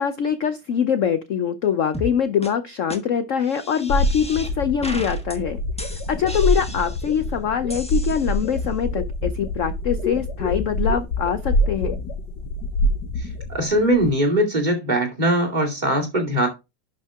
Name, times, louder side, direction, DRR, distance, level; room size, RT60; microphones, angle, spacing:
voice 1, 0.0-5.6 6.1-12.0, left 8 dB, 60° left, 0.9 m, -23 dB
sound 1, 1.9-2.1 2.4-2.5 2.9-3.0 3.4-4.5 4.8-5.4 5.8-7.2 7.7-8.6, left 1 dB, 5° left, 1.0 m, -35 dB
sound 2, 3.9-14.1, left 1 dB, 80° left, 1.8 m, -25 dB
voice 2, 13.2-16.5, right 1 dB, 25° right, 2.5 m, -21 dB
11.0 x 5.5 x 3.6 m
omnidirectional pair, 1.9 m